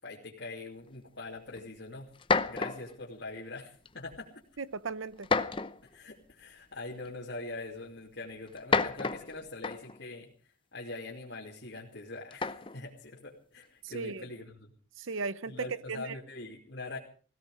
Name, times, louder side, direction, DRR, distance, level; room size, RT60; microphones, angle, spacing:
voice 1, 0.0-2.1 2.4-4.3 5.8-10.3 10.7-14.7 15.5-17.0, left 2 dB, 65° left, 2.7 m, -43 dB
sound 1, 1.6-1.7 2.2-3.0 3.9-4.2 5.2-5.9 7.1-7.2 8.5-10.0 12.3-12.8, left 4 dB, 25° left, 0.7 m, -30 dB
voice 2, 4.6-5.3 13.8-14.2 15.0-16.2, right 4 dB, 80° right, 0.7 m, -36 dB
17.5 x 16.5 x 4.9 m
head